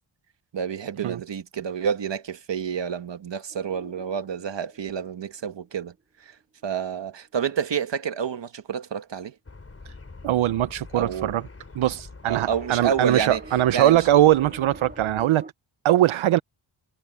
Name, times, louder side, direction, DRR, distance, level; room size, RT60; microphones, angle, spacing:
voice 1, 0.5-9.3 10.9-11.3 12.3-13.4 13.7-14.1, right 7 dB, 65° right, 1.5 m, -29 dB
sound 1, 3.5-5.9 12.3-15.5, right 2 dB, 20° right, 3.2 m, -45 dB
sound 2, 9.4-15.3, left 3 dB, 30° left, 3.3 m, -45 dB
voice 2, 10.2-11.4 11.8-15.4 15.8-16.4, right 13 dB, 80° right, 0.6 m, -21 dB
wide cardioid pair, 165°, 48 cm